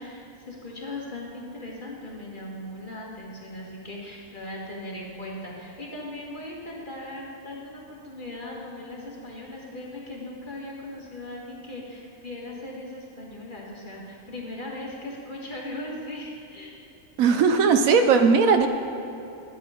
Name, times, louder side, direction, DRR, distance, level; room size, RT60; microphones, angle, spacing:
voice 1, 0.0-16.8, left 1 dB, 35° left, -3 dB, 2.0 m, -38 dB
voice 2, 17.2-18.7, right 5 dB, 75° right, 7 dB, 1.1 m, -18 dB
12.0 x 8.6 x 5.0 m, 3.0 s
omnidirectional pair, 1.5 m